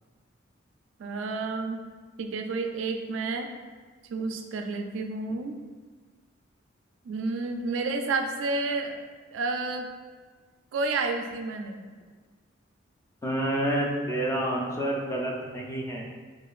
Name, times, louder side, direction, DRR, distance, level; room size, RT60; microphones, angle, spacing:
voice 1, 1.0-1.8 2.2-3.5 4.1-5.6 7.1-9.0 9.3-9.9 10.7-11.8, right 3 dB, 75° right, 5 dB, 0.3 m, -30 dB
voice 2, 13.2-16.0, right 1 dB, 15° left, -2 dB, 0.4 m, -28 dB
4.7 x 2.4 x 2.4 m, 1.4 s
head